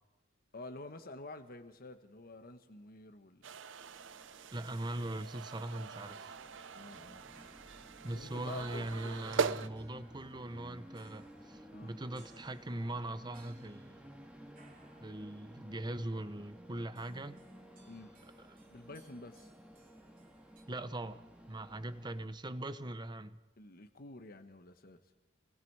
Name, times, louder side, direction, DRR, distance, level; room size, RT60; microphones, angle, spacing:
voice 1, 0.5-3.6 6.7-7.3 8.1-9.4 11.7-11.9 17.9-18.2 18.7-19.5 23.6-25.0, left 2 dB, 50° left, 1.1 m, -49 dB
sound 1, 3.4-9.7, right 6 dB, 70° right, 0.6 m, -41 dB
Train, 3.8-22.2, equal, 5° right, 2.1 m, -55 dB
voice 2, 4.5-6.4 8.0-14.1 15.0-17.4 18.5-18.6 20.7-23.4, right 1 dB, 20° right, 0.8 m, -41 dB
sound 2, 6.3-20.6, right 3 dB, 45° right, 2.8 m, -67 dB
29.5 x 21.5 x 4.7 m
head